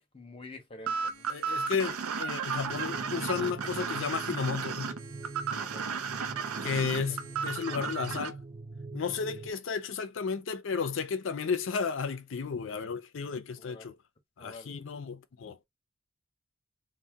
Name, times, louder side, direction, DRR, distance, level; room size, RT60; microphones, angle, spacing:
voice 1, 0.0-1.3 5.5-5.9 6.2-6.8 7.7-7.8 13.6-13.9 14.4-14.7, left 2 dB, 25° left, 0.7 m, -49 dB
sound 1, 0.9-8.3, right 6 dB, 90° right, 0.5 m, -34 dB
voice 2, 1.3-5.0 6.6-8.4 8.9-14.0 14.4-15.6, left 5 dB, 65° left, 0.4 m, -33 dB
sound 2, 2.7-9.5, right 3 dB, 20° right, 0.4 m, -44 dB
2.7 x 2.1 x 3.4 m
head